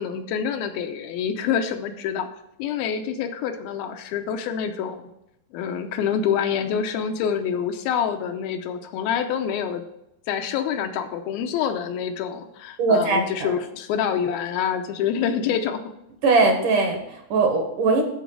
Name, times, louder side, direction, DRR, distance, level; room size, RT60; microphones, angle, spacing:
voice 1, 0.0-2.3 2.6-5.0 5.5-9.8 10.3-15.9, left 8 dB, 80° left, 6 dB, 2.6 m, -26 dB
voice 2, 12.8-13.5 16.2-18.0, right 3 dB, 65° right, 3 dB, 2.6 m, -20 dB
13.5 x 4.6 x 4.6 m, 0.84 s
omnidirectional pair, 4.4 m